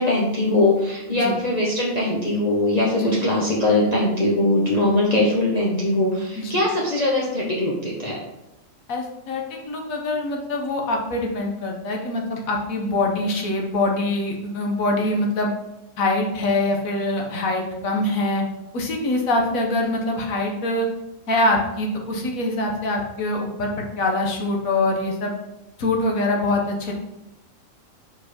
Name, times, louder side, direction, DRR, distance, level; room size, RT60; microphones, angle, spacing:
voice 1, 0.0-8.2, left 2 dB, 35° left, -5 dB, 1.0 m, -21 dB
voice 2, 8.9-15.5 16.0-18.4 18.7-20.9 21.3-25.4 25.8-26.9, left 2 dB, 85° left, 1 dB, 1.5 m, -24 dB
5.0 x 4.8 x 4.3 m, 0.93 s
omnidirectional pair, 1.4 m